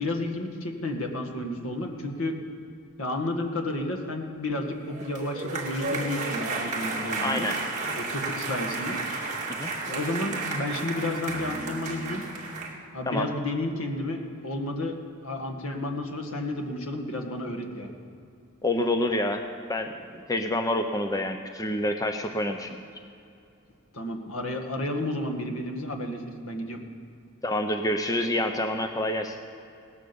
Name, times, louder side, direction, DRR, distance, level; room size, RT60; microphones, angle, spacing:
voice 1, 0.0-2.4 3.0-7.5 8.0-9.0 9.9-12.2 12.9-14.9 15.2-17.9 23.9-26.8, left 1 dB, 75° left, 4 dB, 1.8 m, -31 dB
sound 1, 4.9-12.7, right 3 dB, 35° right, 2.2 m, -32 dB
voice 2, 7.2-7.6 9.5-9.7 13.1-13.3 18.6-19.4 19.7-22.8 27.4-29.4, left 1 dB, 15° left, 5 dB, 0.6 m, -27 dB
18.0 x 10.0 x 7.0 m, 2.6 s
head